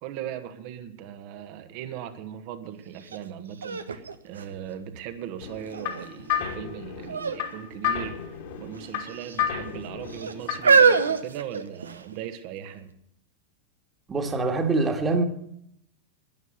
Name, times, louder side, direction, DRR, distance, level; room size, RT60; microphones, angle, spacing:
voice 1, 0.0-8.2 8.6-12.9, right 10 dB, 45° right, 1.5 m, -38 dB
sound 1, 3.1-3.2 3.6-5.1 5.7-6.2 7.1-7.4 7.7-7.9 8.7-9.4 10.1-12.1 12.9-13.0, right 5 dB, 75° right, 1.1 m, -23 dB
sound 2, 5.4-10.8, left 9 dB, 50° left, 2.8 m, -32 dB
voice 2, 14.1-15.2, right 3 dB, 20° right, 1.9 m, -24 dB
12.5 x 11.0 x 7.9 m
figure-of-eight pair, 90°, 0 cm